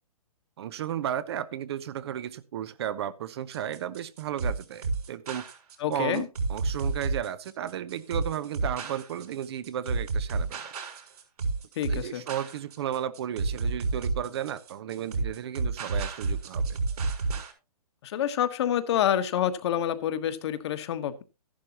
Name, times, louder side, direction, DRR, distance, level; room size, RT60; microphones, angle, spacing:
voice 1, 0.6-5.4 5.9-10.7 11.9-16.8, right 10 dB, 45° right, 14 dB, 0.8 m, -34 dB
sound 1, 3.5-17.5, right 3 dB, 80° right, 6.6 m, -30 dB
voice 2, 5.8-6.3 11.8-12.2 18.0-21.2, left 10 dB, 45° left, 10 dB, 1.3 m, -27 dB
14.0 x 11.5 x 2.9 m, 0.28 s
hypercardioid pair, 155°, 20 cm